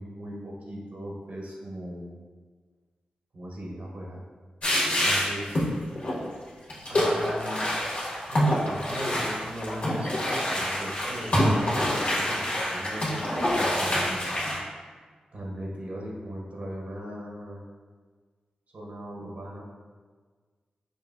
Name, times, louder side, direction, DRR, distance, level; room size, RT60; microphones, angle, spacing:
voice 1, 0.0-2.1 3.3-4.2 4.9-5.7 6.8-7.6 8.2-14.3 15.3-17.6 18.7-19.7, equal, 65° right, -2 dB, 0.7 m, -38 dB
sound 1, 4.6-5.7 6.0-6.1 6.7-14.6, equal, 60° left, 1.2 m, -26 dB
5.2 x 2.1 x 2.3 m, 1.5 s
cardioid pair, 50°, 3 cm